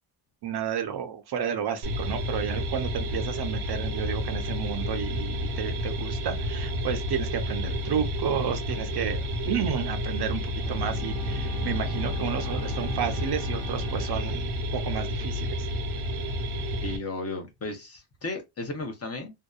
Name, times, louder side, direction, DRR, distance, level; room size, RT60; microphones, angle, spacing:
voice 1, 0.4-15.7, right 8 dB, 55° right, 0.6 m, -32 dB
sound 1, 1.8-17.0, equal, 85° right, 0.8 m, -30 dB
Bowed string instrument, 10.6-15.0, equal, 60° left, 1.1 m, -40 dB
voice 2, 16.8-19.4, left 2 dB, 30° left, 0.7 m, -35 dB
2.7 x 2.2 x 2.3 m
cardioid pair, 135°, 48 cm